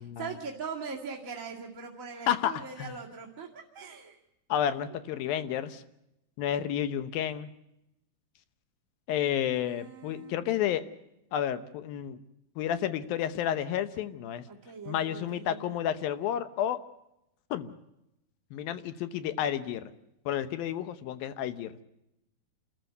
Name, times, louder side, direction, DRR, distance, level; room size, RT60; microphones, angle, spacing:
voice 1, 0.2-4.2 4.9-5.0 5.5-5.7 9.6-10.8 14.5-15.7, right 5 dB, 30° right, -2 dB, 2.0 m, -41 dB
voice 2, 2.3-2.9 4.5-5.8 6.4-7.5 9.1-10.8 11.3-12.2 12.6-14.4 14.9-16.8 17.5-17.7 18.5-19.9 20.3-21.8, left 10 dB, 80° left, 12 dB, 2.8 m, -31 dB
28.5 x 14.0 x 8.0 m, 0.87 s
omnidirectional pair, 4.2 m